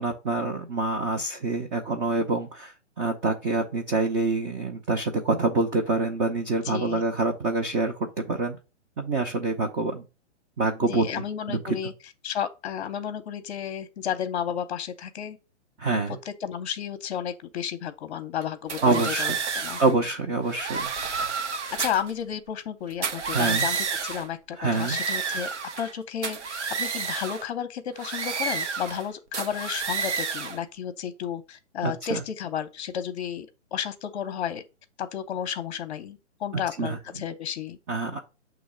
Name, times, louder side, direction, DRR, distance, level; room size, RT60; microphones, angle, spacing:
voice 1, 0.0-8.6 9.0-10.0 10.6-11.7 15.8-16.2 18.8-19.3 19.8-20.9 23.3-23.7 24.6-25.0 31.8-32.2 36.8-37.0 37.9-38.2, right 3 dB, 15° right, 0.4 m, -26 dB
voice 2, 6.6-7.0 10.8-11.9 12.2-15.4 16.1-19.8 21.8-25.5 25.8-34.6 35.0-37.8, left 9 dB, 40° left, 0.7 m, -32 dB
sound 1, 18.7-19.9 20.5-22.1 22.9-24.3 24.6-25.9 26.2-27.4 28.0-29.0 29.3-30.6, right 5 dB, 70° right, 1.0 m, -30 dB
7.0 x 3.1 x 4.8 m
hypercardioid pair, 130°, 36 cm